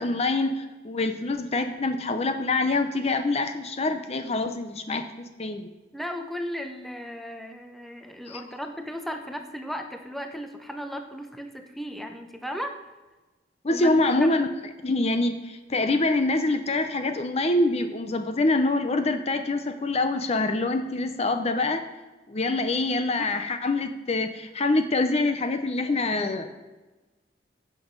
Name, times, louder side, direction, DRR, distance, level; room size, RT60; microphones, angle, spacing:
voice 1, 0.0-5.7 8.3-8.4 13.6-14.5 14.8-21.8 22.3-26.6, left 2 dB, 35° left, 8 dB, 0.7 m, -25 dB
voice 2, 5.9-12.7 13.7-14.4, equal, ahead, 5 dB, 0.8 m, -35 dB
16.0 x 6.1 x 5.3 m, 1.2 s
head